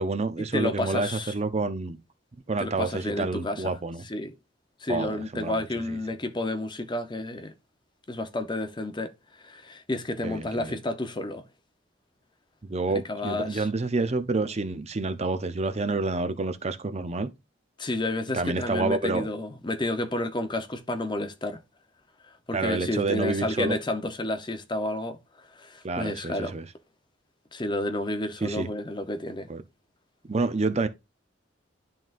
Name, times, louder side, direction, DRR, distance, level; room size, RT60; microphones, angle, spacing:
voice 1, 0.0-2.0 2.5-4.0 4.9-6.0 10.2-10.8 12.6-17.3 18.3-19.3 22.5-23.8 25.8-26.7 28.4-28.7 29.5-29.6 30.3-30.9, right 3 dB, 35° right, 0.6 m, -28 dB
voice 2, 0.5-1.3 2.6-3.6 4.1-4.3 4.8-7.5 8.1-9.1 9.4-11.4 13.1-13.7 17.8-21.6 22.5-25.2 25.6-26.5 27.5-29.5, left 1 dB, 25° left, 0.7 m, -30 dB
11.0 x 3.9 x 2.5 m
head